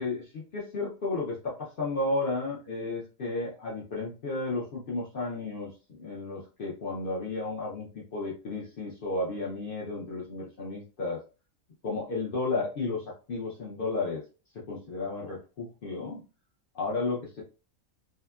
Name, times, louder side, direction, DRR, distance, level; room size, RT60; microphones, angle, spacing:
voice 1, 0.0-11.2 11.8-14.2 14.5-16.2 16.7-17.4, left 3 dB, 60° left, -4 dB, 0.6 m, -33 dB
2.7 x 2.3 x 2.3 m, 0.34 s
omnidirectional pair, 1.5 m